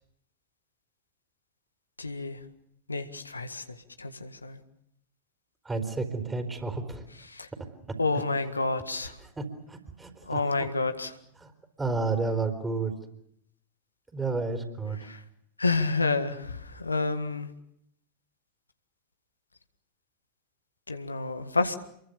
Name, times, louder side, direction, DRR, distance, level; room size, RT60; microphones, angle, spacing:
voice 1, 2.0-2.4 2.9-4.6 7.3-7.5 8.0-9.2 10.2-11.2 15.0-15.2 15.6-17.5 20.9-21.8, left 3 dB, 80° left, 8 dB, 1.7 m, -29 dB
voice 2, 5.6-7.1 7.9-8.0 9.4-10.7 11.4-11.5 11.8-12.9 14.1-15.0, right 3 dB, 10° right, 7 dB, 4.3 m, -31 dB
28.5 x 23.0 x 6.9 m, 0.74 s
figure-of-eight pair, 90°, 0 cm